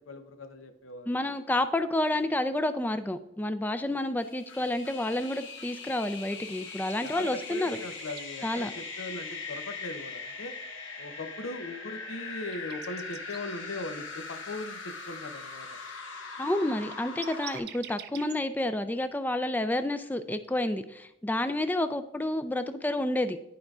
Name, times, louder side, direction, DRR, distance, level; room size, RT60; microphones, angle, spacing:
voice 1, 0.0-1.2 7.0-10.5 11.0-15.7, left 2 dB, 85° left, 7 dB, 0.7 m, -39 dB
voice 2, 1.1-7.8 8.4-8.7 16.4-23.4, left 1 dB, 10° left, 10 dB, 0.3 m, -29 dB
sound 1, 4.2-17.6, left 4 dB, 70° left, 1.2 m, -41 dB
sound 2, 6.5-8.3 10.3-13.4 16.3-16.4 16.5-18.3 20.4-20.5, right 10 dB, 55° right, 0.4 m, -47 dB
11.0 x 4.9 x 2.4 m, 0.87 s
head